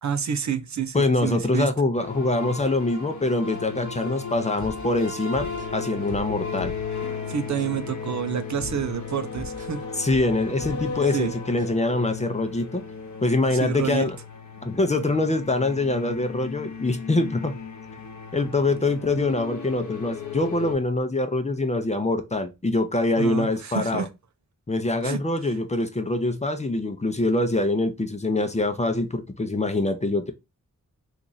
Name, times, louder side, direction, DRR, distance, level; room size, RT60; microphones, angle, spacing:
voice 1, 0.0-1.7 7.3-9.8 11.1-11.3 13.5-14.0 23.2-24.1 25.0-25.2, right 8 dB, 60° right, 0.6 m, -28 dB
voice 2, 0.9-5.5 5.7-6.7 10.0-12.8 13.2-14.2 14.6-17.6 18.3-24.1 24.7-30.3, left 2 dB, 20° left, 0.6 m, -24 dB
sound 1, 1.9-20.7, left 6 dB, 65° left, 0.9 m, -35 dB
sound 2, 4.6-7.1 7.6-7.8 8.6-11.1 11.6-11.8, equal, 25° right, 1.3 m, -41 dB
2.9 x 2.5 x 3.9 m
cardioid pair, 60°, 32 cm